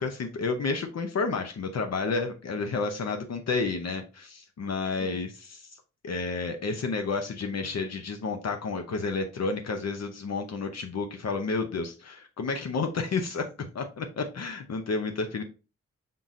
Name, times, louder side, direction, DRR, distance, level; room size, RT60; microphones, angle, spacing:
voice 1, 0.0-5.7 6.0-13.5 13.7-15.4, left 4 dB, 60° left, 5 dB, 0.7 m, -31 dB
5.6 x 3.8 x 2.5 m, 0.33 s
wide cardioid pair, 145°, 29 cm